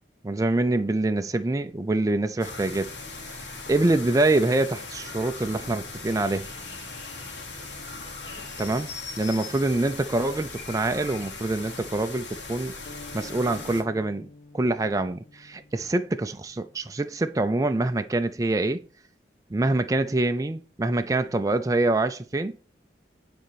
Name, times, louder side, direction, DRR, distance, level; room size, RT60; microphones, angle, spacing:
voice 1, 0.2-2.9 3.3-3.4 3.7-6.5 8.6-12.7 13.1-14.3 14.5-18.8 19.5-22.6, right 2 dB, 20° right, 0.4 m, -25 dB
sound 1, 2.4-13.8, left 3 dB, 85° left, 2.5 m, -39 dB
sound 2, 12.8-16.8, left 2 dB, 45° left, 0.8 m, -48 dB
9.2 x 4.2 x 6.8 m
head